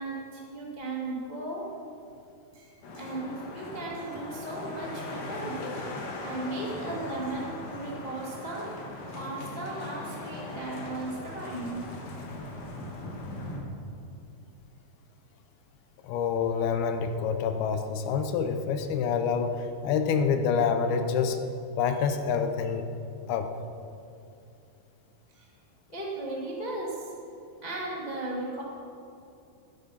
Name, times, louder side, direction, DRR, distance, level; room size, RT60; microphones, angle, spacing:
voice 1, 0.0-1.7 2.5-12.3 25.3-25.5 25.9-27.1 27.6-28.6, right 2 dB, 30° left, -4 dB, 0.7 m, -36 dB
sound 1, 2.8-13.6, left 2 dB, 60° left, 3.1 m, -39 dB
voice 2, 16.0-21.4 21.8-22.9 23.3-23.5, left 6 dB, 80° left, 7 dB, 2.8 m, -27 dB
18.5 x 9.0 x 5.9 m, 2.6 s
omnidirectional pair, 4.4 m